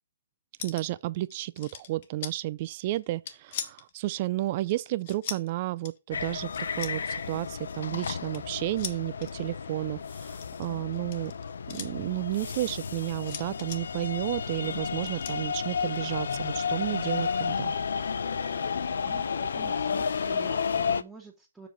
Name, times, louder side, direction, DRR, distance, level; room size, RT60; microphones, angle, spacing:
sound 1, 0.6-1.0 1.3-2.3 3.0-3.9 4.7-5.5 5.8-6.0 6.5-7.0 7.5-8.4 8.8-9.4 10.3-11.9 13.2-13.8 15.0-15.3, left 8 dB, 45° left, 1.2 m, -39 dB
voice 1, 0.6-6.5 6.8-11.3 11.7-17.7, right 16 dB, 40° right, 0.4 m, -32 dB
sound 2, 6.1-21.0, left 6 dB, 75° left, 0.7 m, -32 dB
voice 2, 19.5-21.7, right 3 dB, 5° right, 1.6 m, -49 dB
6.4 x 5.1 x 5.8 m
hypercardioid pair, 145°, 0 cm